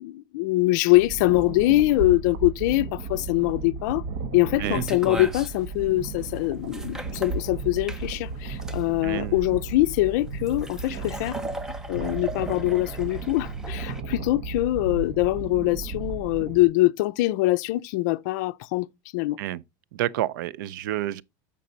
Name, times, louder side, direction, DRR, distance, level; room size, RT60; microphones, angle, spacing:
voice 1, 0.0-4.0 4.3-11.4 11.9-18.9 19.1-19.4, left 18 dB, 65° left, 0.5 m, -23 dB
sound 1, 0.9-16.7, right 4 dB, 55° right, 1.2 m, -35 dB
sound 2, 4.6-14.0, right 1 dB, 5° right, 0.7 m, -37 dB
voice 2, 9.0-9.5 19.4-19.6 19.9-21.2, right 13 dB, 90° right, 0.5 m, -29 dB
7.7 x 5.2 x 4.0 m
supercardioid pair, 160°, 10 cm